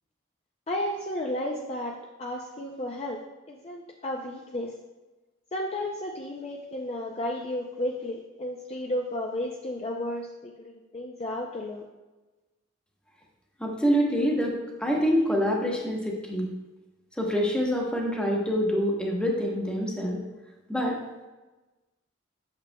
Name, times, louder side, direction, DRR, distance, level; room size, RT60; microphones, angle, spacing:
voice 1, 0.7-3.2 3.5-4.7 5.5-11.9, left 1 dB, 30° left, 0 dB, 0.5 m, -33 dB
voice 2, 13.6-16.5 17.2-20.2 20.7-21.0, equal, 5° left, -1 dB, 1.0 m, -26 dB
8.7 x 6.7 x 2.2 m, 1.2 s
head